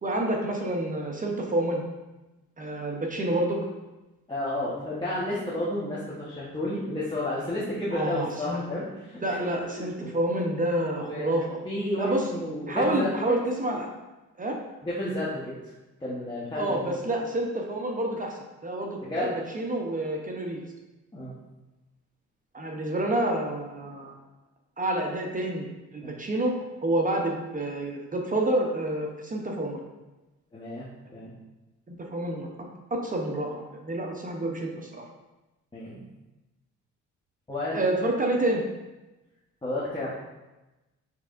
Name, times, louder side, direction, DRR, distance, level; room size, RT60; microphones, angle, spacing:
voice 1, 0.0-1.8 2.6-3.6 7.9-8.6 9.2-11.6 12.0-12.3 12.7-13.9 14.4-14.6 16.5-20.6 22.5-24.2 24.8-26.5 26.8-29.8 31.9-32.5 32.9-35.0 37.7-38.6, right 1 dB, 25° right, 1 dB, 0.7 m, -28 dB
voice 2, 4.3-9.6 10.0-10.2 11.0-11.3 11.6-13.2 14.8-15.5 16.0-17.0 19.0-19.3 21.1-21.3 26.0-26.1 30.5-31.3 35.7-36.0 37.5-37.8 39.6-40.1, left 1 dB, 15° left, -8 dB, 1.0 m, -31 dB
6.3 x 3.2 x 2.5 m, 1.0 s
cardioid pair, 90°, 30 cm